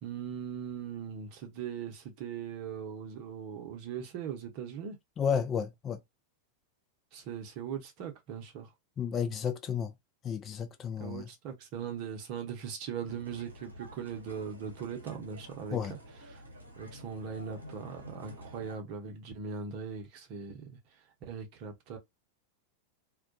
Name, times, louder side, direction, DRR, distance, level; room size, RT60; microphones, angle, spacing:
voice 1, 0.0-5.0 7.1-8.7 11.0-16.0 16.3-16.4 16.8-22.0, right 7 dB, 45° right, 0.8 m, -40 dB
voice 2, 5.2-6.0 9.0-9.9 10.2-11.2 15.7-15.9, left 7 dB, 25° left, 0.4 m, -32 dB
sound 1, 13.1-18.8, equal, 80° right, 0.9 m, -49 dB
2.3 x 2.1 x 2.6 m
figure-of-eight pair, 90°, 0 cm